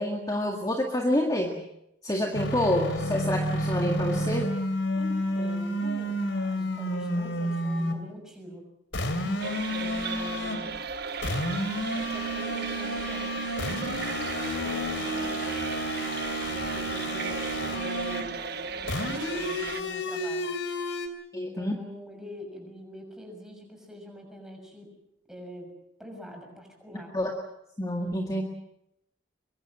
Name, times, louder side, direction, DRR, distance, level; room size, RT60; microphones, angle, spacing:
voice 1, 0.0-1.6 2.0-4.5 21.3-21.8 27.1-27.3 27.8-28.4, left 1 dB, 20° left, 2 dB, 2.0 m, -27 dB
sound 1, 2.3-8.0 8.9-10.7 11.2-18.3 18.9-21.1, equal, 80° left, 3.2 m, -30 dB
voice 2, 4.9-8.6 9.0-10.7 11.8-13.8 14.6-15.6 16.5-20.5 21.3-24.9 25.3-25.7 26.0-27.1, equal, 5° right, 2 dB, 6.4 m, -44 dB
sound 2, 9.4-19.8, right 5 dB, 55° right, 1.3 m, -36 dB
23.5 x 23.5 x 7.6 m, 0.81 s
head